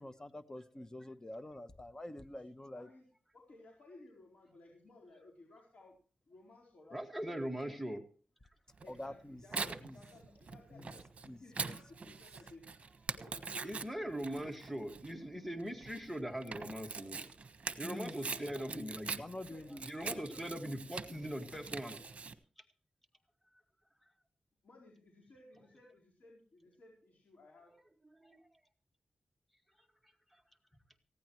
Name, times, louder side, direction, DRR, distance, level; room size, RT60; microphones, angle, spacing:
voice 1, 0.0-2.9 8.9-9.4 9.8-10.0 10.7-10.9 11.3-11.8 12.1-12.2 17.0-17.1 17.8-18.2 18.7-18.9 19.2-19.9, left 1 dB, 25° left, 12 dB, 1.0 m, -47 dB
voice 2, 2.7-3.1 3.3-6.0 6.3-7.7 8.8-12.7 13.1-14.2 18.3-18.9 19.5-19.7 20.0-20.6 24.6-27.7, left 2 dB, 70° left, -3 dB, 4.3 m, -59 dB
voice 3, 6.9-8.0 9.5-9.7 13.6-17.3 17.8-19.2 19.8-22.0 28.2-28.5, right 1 dB, ahead, 6 dB, 2.0 m, -41 dB
Tearing, 8.8-22.3, right 4 dB, 50° right, 1.3 m, -44 dB
19.5 x 16.0 x 3.1 m, 0.40 s
wide cardioid pair, 95°, 3 cm